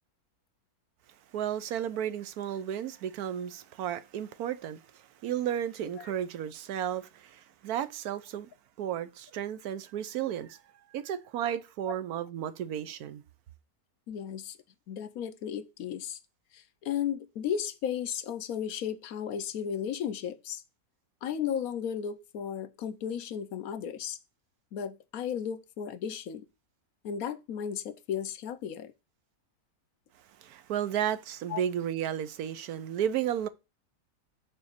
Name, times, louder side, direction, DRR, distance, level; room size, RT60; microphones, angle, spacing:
voice 1, 1.3-8.5 8.8-10.6 10.9-13.2 30.4-33.5, right 10 dB, 85° right, 1.2 m, -33 dB
voice 2, 14.1-14.6 14.9-16.2 16.5-20.6 21.2-24.2 24.7-26.4 27.0-28.9 31.5-31.6, left 8 dB, 75° left, 1.2 m, -34 dB
6.7 x 4.3 x 6.5 m
omnidirectional pair, 1.6 m